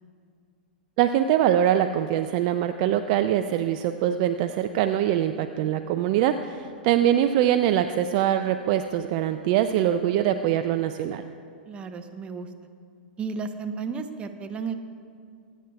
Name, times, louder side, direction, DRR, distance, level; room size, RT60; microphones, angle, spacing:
voice 1, 1.0-11.2, right 11 dB, 45° right, 9 dB, 0.4 m, -23 dB
voice 2, 11.7-12.5 13.2-14.7, right 5 dB, 20° right, 7 dB, 0.8 m, -33 dB
23.0 x 9.1 x 2.3 m, 2.3 s
figure-of-eight pair, 105°, 5 cm